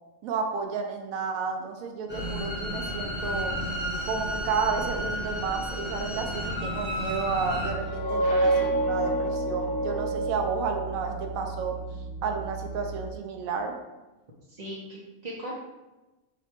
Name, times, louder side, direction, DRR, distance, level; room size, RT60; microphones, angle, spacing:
voice 1, 0.2-3.5 4.1-11.7 12.2-13.7, right 5 dB, 85° right, 3 dB, 1.0 m, -31 dB
sound 1, 2.1-7.7, equal, 10° left, 0.9 m, -32 dB
sound 2, 7.5-13.1, right 3 dB, 90° left, 1.0 m, -38 dB
sound 3, 7.8-11.4, right 1 dB, 60° left, 0.7 m, -27 dB
voice 2, 14.5-15.5, equal, 45° right, -6 dB, 0.6 m, -38 dB
4.8 x 2.3 x 4.4 m, 1.1 s
omnidirectional pair, 1.4 m